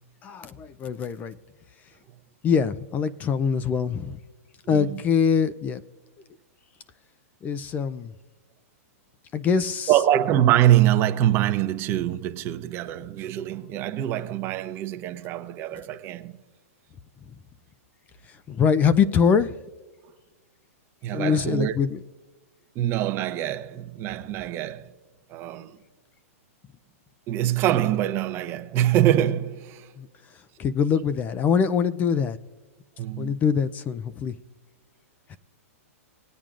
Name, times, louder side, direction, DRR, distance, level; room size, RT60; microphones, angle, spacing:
voice 1, 0.2-1.4 2.4-4.2 4.7-5.8 7.4-8.1 9.3-9.9 18.3-19.6 21.1-22.0 30.0-30.1 30.3-32.4 33.2-34.4 35.3-35.4, left 6 dB, 20° left, 0.4 m, -23 dB
voice 2, 4.6-5.0 9.9-16.4 21.0-21.8 22.7-24.9 25.3-25.8 27.3-29.9 33.0-33.4, right 12 dB, 30° right, 0.7 m, -24 dB
20.0 x 8.9 x 2.5 m
hypercardioid pair, 145°, 8 cm